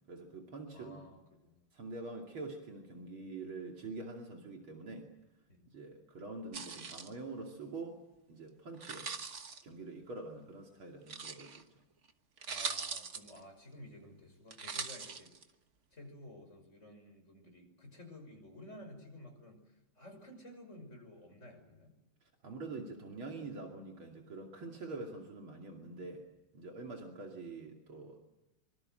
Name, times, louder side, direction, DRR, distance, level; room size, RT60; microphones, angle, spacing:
voice 1, 0.1-1.1 1.7-5.1 5.7-8.0 8.3-9.1 9.6-11.6 22.4-26.2 26.5-28.2, right 3 dB, 70° right, 1 dB, 3.5 m, -45 dB
voice 2, 0.7-1.7 5.5-5.7 12.5-15.3 15.9-21.9, left 1 dB, 30° left, 4 dB, 6.3 m, -53 dB
sound 1, 6.5-7.1 8.7-9.6 11.1-11.6 12.1-12.2 12.4-13.4 14.5-15.4, right 5 dB, 40° right, 1.5 m, -41 dB
25.0 x 24.5 x 7.9 m, 0.98 s
omnidirectional pair, 2.3 m